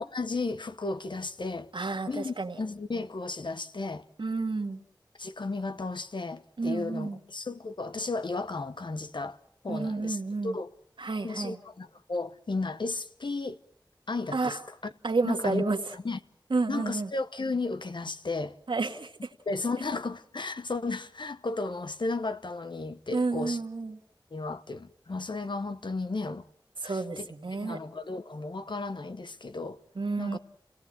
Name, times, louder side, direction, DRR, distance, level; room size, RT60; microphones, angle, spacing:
voice 1, 0.0-1.7 2.1-4.0 5.2-9.4 9.6-10.7 11.2-13.6 14.1-14.8 15.2-15.7 16.0-16.2 16.7-18.6 19.5-23.6 24.3-26.5 26.8-27.3 27.6-29.8 30.2-30.4, left 3 dB, 70° left, 1.1 m, -34 dB
voice 2, 1.7-2.6 4.2-4.8 6.6-7.2 9.7-10.6 11.0-11.6 14.3-14.6 15.0-15.8 16.5-17.1 18.7-19.1 23.1-24.0 26.8-27.8 30.0-30.4, right 3 dB, 80° right, 1.9 m, -30 dB
29.0 x 17.5 x 7.7 m
wide cardioid pair, 65°, 8 cm